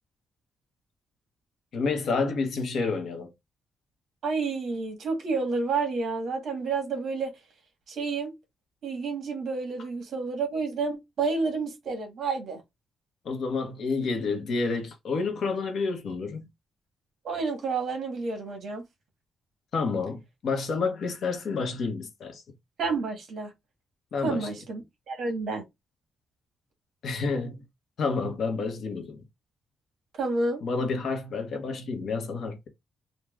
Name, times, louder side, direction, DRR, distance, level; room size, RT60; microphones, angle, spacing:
voice 1, 1.7-3.3 13.2-16.4 19.7-22.4 24.1-24.5 27.0-27.6 28.0-29.2 30.6-32.7, left 4 dB, 55° left, 0.9 m, -29 dB
voice 2, 4.2-7.3 7.9-8.3 8.8-12.6 17.2-18.8 22.8-23.5 24.2-24.8 25.1-25.6 30.2-30.6, right 4 dB, 60° right, 1.4 m, -29 dB
3.5 x 2.3 x 3.1 m
cardioid pair, 155°, 0 cm